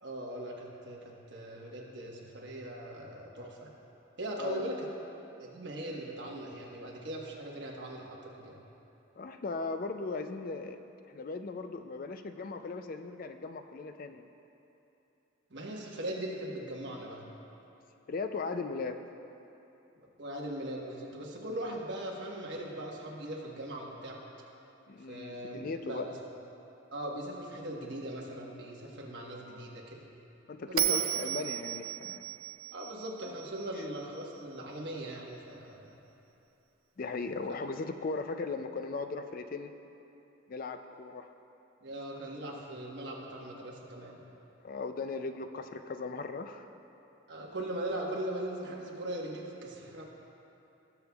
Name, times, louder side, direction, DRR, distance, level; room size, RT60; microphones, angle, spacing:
voice 1, 0.0-3.7 4.2-4.8 5.4-8.6 15.5-17.2 20.0-24.2 25.1-26.2 26.9-30.1 30.7-31.1 32.7-35.9 41.8-44.2 47.3-50.0, right 1 dB, 55° right, -2 dB, 1.2 m, -40 dB
voice 2, 4.4-4.7 9.2-14.2 18.1-19.0 24.9-26.0 30.5-32.2 33.8-33.9 37.0-39.7 40.5-41.3 44.6-46.7, left 3 dB, 40° left, 8 dB, 0.3 m, -38 dB
Bell, 30.8-34.0, right 13 dB, 75° right, 0.4 m, -34 dB
18.5 x 7.0 x 2.3 m, 3.0 s
head